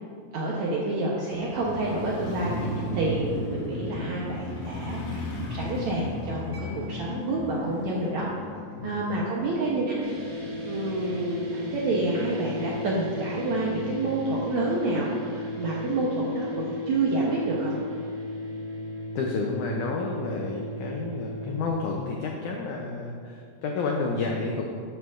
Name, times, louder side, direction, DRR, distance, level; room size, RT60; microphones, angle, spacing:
voice 1, 0.3-8.3 8.8-10.0 10.7-17.7, right 2 dB, 80° right, -4 dB, 1.7 m, -28 dB
Motorcycle, 1.3-11.4 11.8-11.9, left 1 dB, 65° left, 2.2 m, -36 dB
Mallet percussion, 6.5-13.9, left 10 dB, 50° right, 0.7 m, -46 dB
sound 1, 10.0-21.7, left 1 dB, 35° right, 2.2 m, -35 dB
voice 2, 19.1-24.7, left 3 dB, 90° left, 0 dB, 1.7 m, -30 dB
12.5 x 8.7 x 2.5 m, 2.2 s
omnidirectional pair, 4.4 m